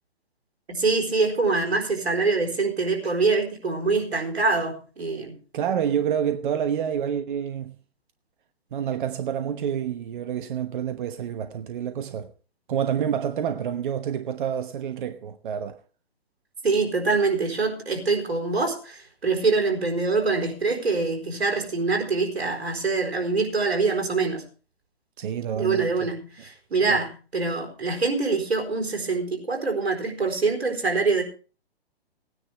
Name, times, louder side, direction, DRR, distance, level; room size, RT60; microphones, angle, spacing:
voice 1, 0.7-5.3 16.6-24.4 25.5-31.2, right 4 dB, 75° right, 4.1 m, -24 dB
voice 2, 5.5-7.7 8.7-12.3 12.7-15.8 25.2-26.1, right 8 dB, 50° right, 1.1 m, -28 dB
18.5 x 9.9 x 3.5 m
hypercardioid pair, 135°, 32 cm